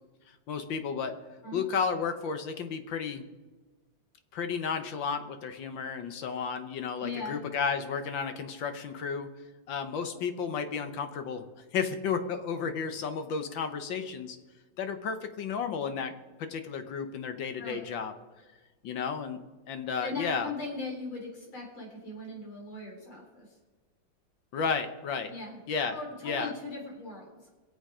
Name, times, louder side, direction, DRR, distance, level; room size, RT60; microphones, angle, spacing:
voice 1, 0.3-1.1 1.5-3.2 4.3-9.3 9.7-11.4 11.7-14.4 14.8-16.1 16.4-18.1 18.8-19.4 19.7-20.5 24.5-25.3 25.7-25.9 26.2-26.5, left 6 dB, 70° left, 8 dB, 1.7 m, -32 dB
voice 2, 7.0-7.4 17.6-17.8 20.0-23.6 25.3-25.6 25.9-27.5, left 3 dB, 85° left, -1 dB, 4.6 m, -39 dB
23.0 x 8.1 x 5.0 m, 1.3 s
omnidirectional pair, 2.2 m